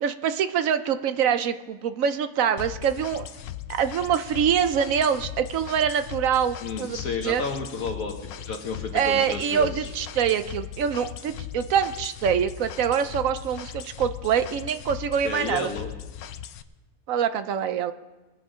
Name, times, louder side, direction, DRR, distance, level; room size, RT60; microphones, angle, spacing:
voice 1, 0.0-3.3 3.7-7.4 8.9-15.7 17.1-17.9, right 8 dB, 70° right, 11 dB, 1.0 m, -25 dB
sound 1, 2.6-16.6, left 10 dB, 85° left, 1.1 m, -38 dB
voice 2, 6.6-9.9 15.2-15.9, left 4 dB, 70° left, 1 dB, 1.6 m, -32 dB
21.5 x 7.7 x 5.0 m, 1.2 s
omnidirectional pair, 1.5 m